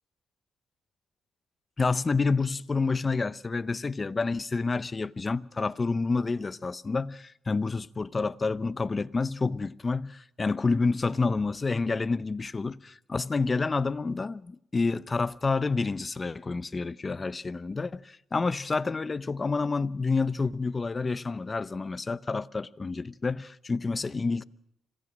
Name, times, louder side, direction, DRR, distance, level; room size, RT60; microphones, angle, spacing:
voice 1, 1.8-24.4, left 4 dB, 30° left, 0.7 m, -29 dB
26.0 x 16.5 x 6.3 m
cardioid pair, 90°, 0 cm